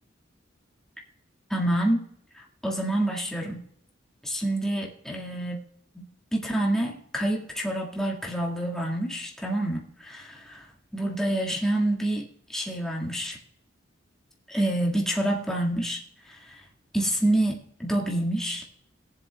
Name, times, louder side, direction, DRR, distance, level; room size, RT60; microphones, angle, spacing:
voice 1, 1.5-2.0 2.6-3.6 4.2-5.6 5.9-6.1 6.3-10.6 10.9-13.4 14.5-16.0 16.3-16.4 16.9-18.6, right 1 dB, 5° left, -2 dB, 1.8 m, -27 dB
21.5 x 7.5 x 2.3 m, 0.71 s
head